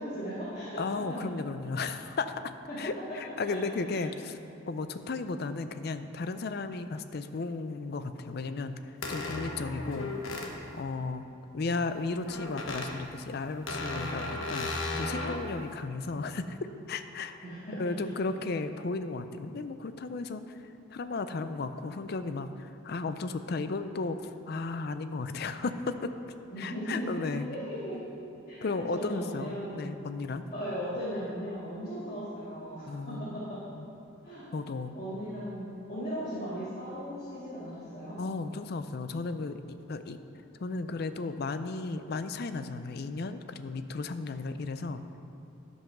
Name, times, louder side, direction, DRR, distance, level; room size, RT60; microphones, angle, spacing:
voice 1, 0.0-0.8 1.1-1.2 2.7-2.8 3.1-3.2 3.4-3.6 3.9-4.0 17.4-17.9 26.5-28.0 28.5-29.9 30.5-33.6 34.2-34.5 34.9-38.2, equal, 30° left, -11 dB, 2.2 m, -37 dB
voice 2, 0.8-2.3 2.8-4.4 4.7-10.1 10.7-11.2 11.5-16.6 16.9-17.4 17.8-26.1 26.6-27.5 28.6-30.5 32.9-33.9 34.5-35.0 38.2-40.2 40.6-45.0, left 3 dB, 50° left, 10 dB, 0.4 m, -35 dB
sound 1, 9.0-10.5 12.3-12.9 13.7-15.4, left 2 dB, 75° left, 1.1 m, -35 dB
12.0 x 5.5 x 6.0 m, 2.8 s
head